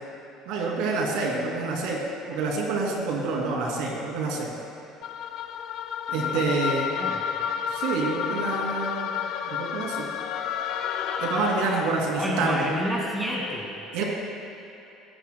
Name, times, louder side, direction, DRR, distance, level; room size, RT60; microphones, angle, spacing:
voice 1, 0.5-2.0 2.3-4.5 6.1-6.9 7.7-10.1 11.2-12.7 13.9-14.0, right 3 dB, 80° right, -2 dB, 2.7 m, -27 dB
sound 1, 5.0-12.3, left 8 dB, 60° left, 0.6 m, -31 dB
voice 2, 6.1-7.2 12.1-13.7, equal, 5° right, -3 dB, 2.2 m, -30 dB
17.5 x 15.0 x 2.2 m, 2.9 s
cardioid pair, 135°, 0 cm